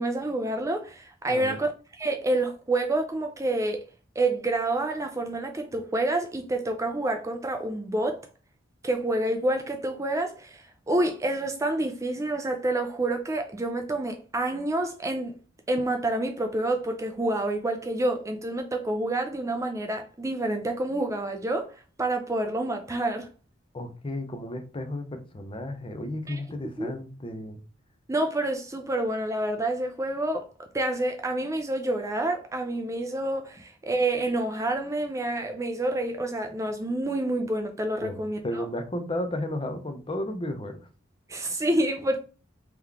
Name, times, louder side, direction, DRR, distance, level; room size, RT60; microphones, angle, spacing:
voice 1, 0.0-1.7 2.0-3.8 4.2-8.3 8.8-15.3 15.7-21.7 22.0-23.3 26.3-26.4 26.8-26.9 28.1-30.5 30.7-38.7 41.3-42.2, right 2 dB, 15° right, 0.4 m, -28 dB
voice 2, 1.3-1.6 23.7-27.6 38.0-38.2 38.4-40.8, left 1 dB, 25° left, 0.7 m, -33 dB
3.8 x 3.0 x 3.4 m
head